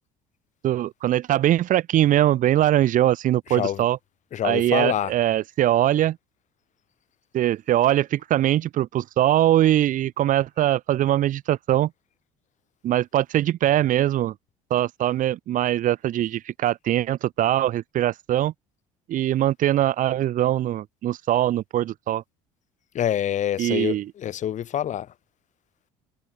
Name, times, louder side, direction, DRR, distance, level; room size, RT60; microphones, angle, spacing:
voice 1, 0.6-4.0 4.4-6.2 7.3-11.9 12.8-14.3 14.7-18.5 19.1-22.2 23.6-24.0, right 13 dB, 55° right, 2.8 m, -22 dB
voice 2, 3.5-3.8 4.3-5.1 22.9-25.1, left 10 dB, 50° left, 3.0 m, -26 dB
hypercardioid pair, 70°, 16 cm